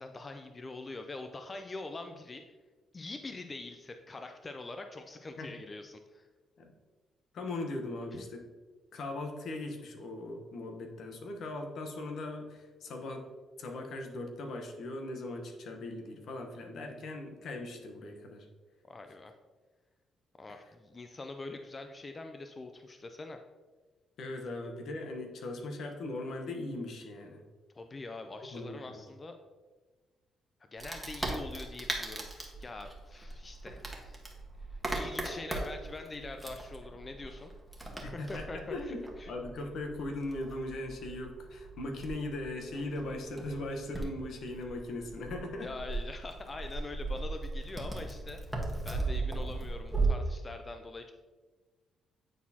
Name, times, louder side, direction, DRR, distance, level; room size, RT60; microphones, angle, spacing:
voice 1, 0.0-2.4 2.9-6.2 8.1-8.3 18.9-19.3 20.4-23.4 27.8-29.3 30.7-34.2 34.7-37.5 38.1-39.3 45.6-51.1, left 3 dB, 30° left, 6 dB, 0.4 m, -44 dB
voice 2, 7.3-8.4 8.9-13.3 13.6-18.4 20.5-20.6 24.2-27.4 28.5-29.0 38.2-45.7, left 2 dB, 65° left, 4 dB, 1.0 m, -39 dB
Wood, 30.8-50.1, right 3 dB, 5° right, 1.3 m, -38 dB
9.1 x 4.2 x 2.8 m, 1.3 s
cardioid pair, 90°, 0 cm